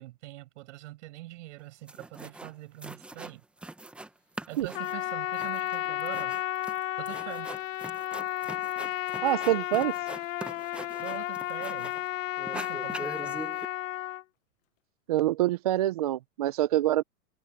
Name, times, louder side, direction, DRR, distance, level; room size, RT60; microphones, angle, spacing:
voice 1, 0.0-3.4 4.5-6.4 7.0-7.5 11.0-11.9 12.5-13.4, right 18 dB, 50° right, 6.0 m, -43 dB
sound 1, 1.6-1.7 1.9-2.5 2.8-4.1 4.4-12.1 12.4-13.7, right 2 dB, ahead, 0.8 m, -42 dB
Trumpet, 4.7-14.2, left 15 dB, 60° left, 0.7 m, -33 dB
voice 2, 9.2-9.9 15.1-17.0, right 14 dB, 30° right, 0.4 m, -25 dB
hypercardioid pair, 140°, 44 cm